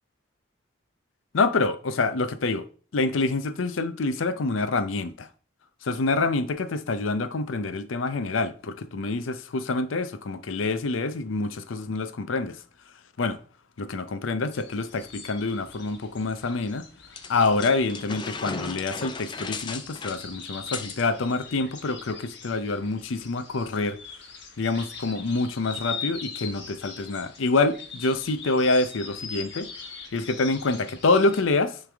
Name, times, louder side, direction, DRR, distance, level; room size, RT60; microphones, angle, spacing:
voice 1, 1.3-2.7 2.9-5.3 5.8-12.6 13.2-13.4 13.8-16.9 17.3-24.0 24.6-29.7 30.1-31.8, left 3 dB, 80° left, 0.6 m, -26 dB
sound 1, 14.5-31.4, left 5 dB, 55° left, 1.2 m, -42 dB
sound 2, 17.2-21.1, left 4 dB, 25° left, 0.4 m, -36 dB
9.3 x 3.4 x 3.4 m
head